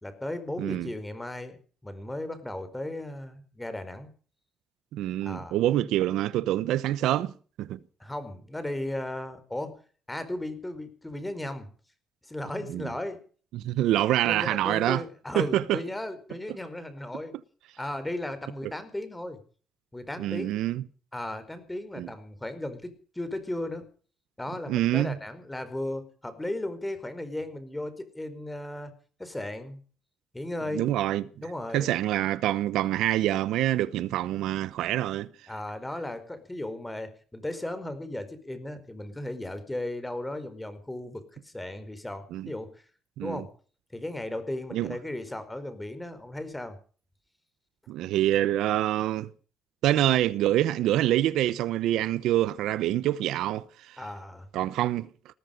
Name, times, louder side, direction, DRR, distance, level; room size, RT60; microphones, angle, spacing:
voice 1, 0.0-4.1 5.2-5.6 8.0-9.8 10.1-11.7 12.2-13.2 14.2-17.3 17.8-19.4 19.9-20.5 21.1-23.9 24.4-28.9 29.2-29.8 30.3-30.9 31.4-31.9 35.5-42.8 43.2-43.5 43.9-46.8 54.0-54.5, left 1 dB, 10° left, 4.7 m, -36 dB
voice 2, 0.6-0.9 4.9-7.3 7.6-7.8 12.7-12.9 13.5-15.0 15.3-15.8 20.2-20.8 22.0-22.1 24.7-25.1 30.7-31.3 31.7-35.3 42.3-42.5 43.2-43.4 44.7-44.9 47.9-49.3 49.8-54.0 54.5-55.3, right 13 dB, 90° right, 0.9 m, -26 dB
19.5 x 14.0 x 5.3 m
cardioid pair, 90°, 0 cm